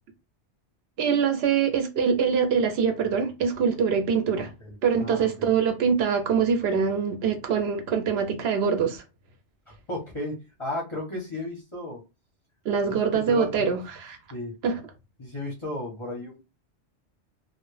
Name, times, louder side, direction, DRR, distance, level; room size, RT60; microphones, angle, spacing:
voice 1, 1.0-4.5 4.8-9.0 12.6-14.2 14.6-14.8, right 6 dB, 70° right, 0.8 m, -24 dB
voice 2, 5.0-5.5 9.9-12.0 12.8-13.8 14.3-14.5 15.2-16.4, left 2 dB, 35° left, 0.6 m, -34 dB
2.1 x 2.0 x 3.1 m
omnidirectional pair, 1.2 m